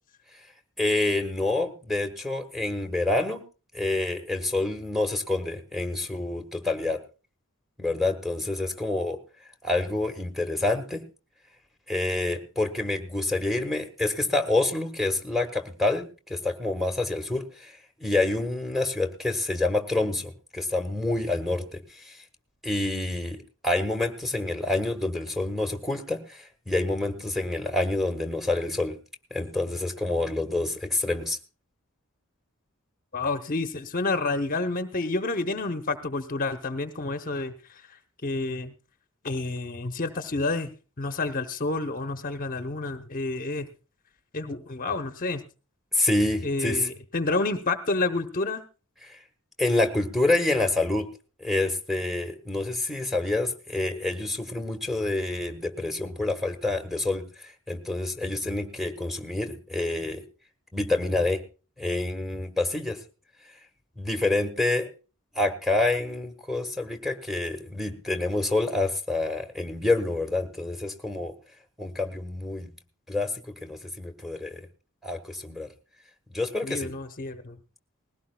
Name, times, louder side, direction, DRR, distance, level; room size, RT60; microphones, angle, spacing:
voice 1, 0.8-3.4 3.7-7.0 7.8-9.2 9.6-11.0 11.9-21.8 22.0-22.2 22.6-23.4 23.6-28.9 29.3-31.4 45.9-46.9 49.1-49.2 49.6-51.1 51.4-57.2 57.7-60.2 60.7-61.4 61.8-63.0 64.0-64.9 65.3-71.3 71.8-72.7 73.1-73.3 73.6-74.6 75.0-75.7 76.3-76.9, left 2 dB, ahead, 4 dB, 1.3 m, -27 dB
voice 2, 33.1-38.7 39.2-40.7 41.0-43.7 44.3-45.4 46.4-48.6 76.6-77.6, left 3 dB, 40° left, 7 dB, 0.8 m, -29 dB
20.0 x 17.0 x 2.2 m, 0.34 s
head